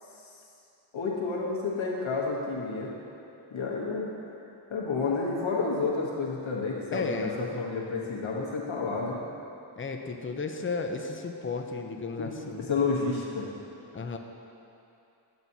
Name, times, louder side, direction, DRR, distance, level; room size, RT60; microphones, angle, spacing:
voice 1, 0.9-2.9 3.5-4.1 4.7-9.2 12.2-12.3 12.7-13.5, left 4 dB, 85° left, -3 dB, 1.2 m, -30 dB
voice 2, 6.9-7.4 9.8-12.7 13.9-14.2, left 4 dB, 25° left, 4 dB, 0.5 m, -34 dB
9.1 x 7.1 x 2.7 m, 2.8 s
wide cardioid pair, 85°, 46 cm